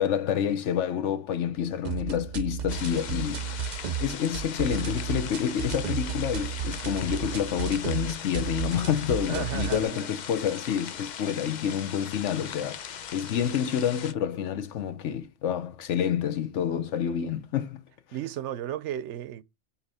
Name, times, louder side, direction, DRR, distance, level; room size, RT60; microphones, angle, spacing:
voice 1, 0.0-3.7 4.0-12.9 13.1-17.8, left 9 dB, 80° left, 1.1 m, -28 dB
sound 1, 1.8-9.8, right 8 dB, 50° right, 0.6 m, -33 dB
sound 2, 2.7-14.1, left 8 dB, 50° left, 0.6 m, -39 dB
voice 2, 9.3-10.1 18.1-19.4, right 11 dB, 85° right, 0.9 m, -34 dB
8.2 x 2.9 x 4.1 m
omnidirectional pair, 1.2 m